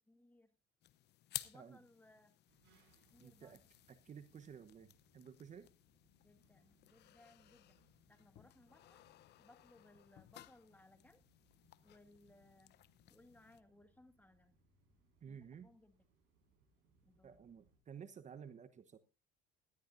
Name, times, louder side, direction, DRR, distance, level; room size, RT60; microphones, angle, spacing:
voice 1, 0.1-0.5 1.4-2.3 3.1-3.6 6.2-7.8 8.1-9.0 9.4-11.2 11.8-12.8 13.1-14.6 15.3-16.0 17.0-17.5, left 1 dB, 10° left, 9 dB, 1.9 m, -65 dB
sound 1, 0.8-13.6, left 14 dB, 55° left, 0.8 m, -56 dB
sound 2, 2.5-17.8, right 3 dB, 65° right, 7.0 m, -76 dB
voice 2, 3.2-3.6 3.9-5.7 15.2-15.7 17.2-19.0, right 7 dB, 35° right, 12 dB, 1.1 m, -54 dB
18.0 x 13.0 x 2.6 m, 0.29 s
supercardioid pair, 90°, 20 cm